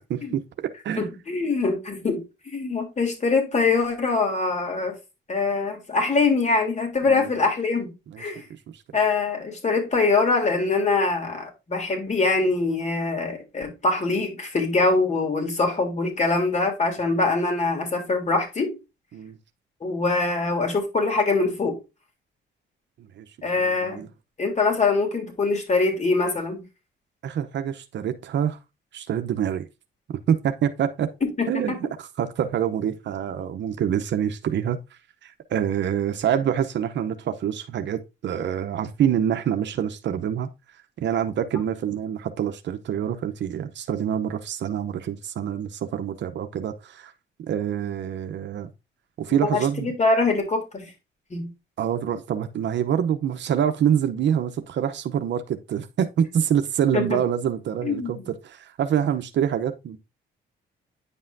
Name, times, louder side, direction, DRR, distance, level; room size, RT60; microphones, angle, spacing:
voice 1, 0.1-0.4 0.8-1.1 7.1-7.3 8.1-8.2 8.5-8.8 19.1-19.4 23.0-23.3 23.6-24.1 27.2-28.6 28.9-29.7 30.3-31.1 31.5-34.8 35.2-40.5 41.0-47.1 47.4-48.7 49.2-49.9 51.8-60.0, right 9 dB, 65° right, 0.8 m, -26 dB
voice 2, 1.0-4.9 5.3-7.9 8.2-8.5 8.9-18.8 19.8-21.8 23.4-24.0 24.4-26.6 31.4-31.6 49.3-50.9 51.3-51.5 56.9-57.2 57.8-58.3, left 3 dB, 35° left, 3.3 m, -23 dB
9.9 x 5.5 x 2.7 m
cardioid pair, 90°, 20 cm